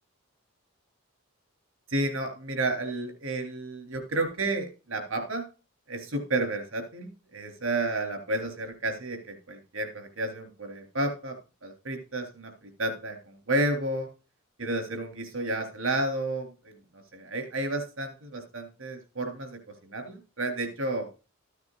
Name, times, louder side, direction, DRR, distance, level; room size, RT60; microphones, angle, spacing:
voice 1, 1.9-5.4 5.9-11.4 11.6-14.1 14.6-21.1, right 2 dB, 70° right, 5 dB, 3.4 m, -31 dB
14.5 x 9.5 x 2.4 m, 0.32 s
head